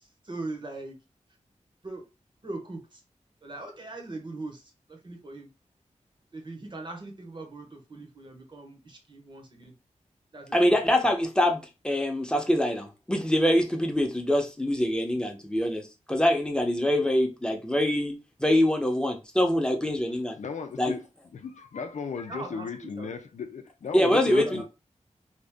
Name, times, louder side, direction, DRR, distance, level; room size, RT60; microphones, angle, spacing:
voice 1, 0.2-1.0 1.8-2.0 2.4-3.0 3.4-4.6 4.9-5.5 6.3-9.7 10.3-10.7 22.3-23.1 24.3-24.6, right 2 dB, 40° right, 0.9 m, -40 dB
voice 2, 10.5-20.4 20.8-20.9 23.9-24.6, left 1 dB, 5° left, 0.8 m, -24 dB
voice 3, 20.1-21.0 21.3-24.6, left 6 dB, 75° left, 0.5 m, -36 dB
2.8 x 2.5 x 3.5 m
wide cardioid pair, 100°, 12 cm